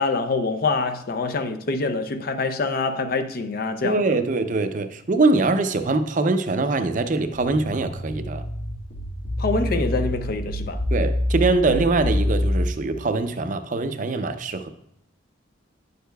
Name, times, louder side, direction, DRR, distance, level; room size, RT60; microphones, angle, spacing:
voice 1, 0.0-4.0 9.4-10.8, left 3 dB, 50° left, 0.5 m, -25 dB
voice 2, 3.8-8.4 10.9-14.7, right 3 dB, 40° right, 0.5 m, -23 dB
sound 1, 7.3-12.7, left 1 dB, 90° left, 1.9 m, -26 dB
10.0 x 6.6 x 2.3 m
head